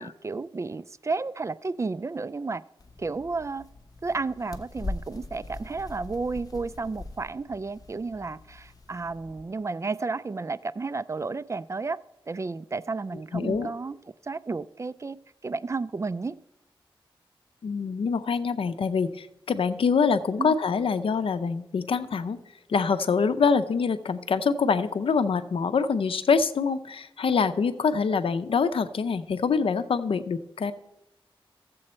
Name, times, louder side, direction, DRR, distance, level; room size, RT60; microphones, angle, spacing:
voice 1, 0.0-2.6 3.0-3.7 4.0-12.0 12.3-14.0 14.2-15.2 15.4-16.4 20.4-20.5, right 3 dB, 30° right, 17 dB, 0.3 m, -32 dB
sound 1, 2.8-9.5, left 2 dB, 40° left, 1.0 m, -41 dB
voice 2, 13.3-13.7 17.6-22.4 22.7-30.7, left 5 dB, 75° left, 11 dB, 0.6 m, -25 dB
13.5 x 7.7 x 4.3 m, 0.91 s
cardioid pair, 60°, 9 cm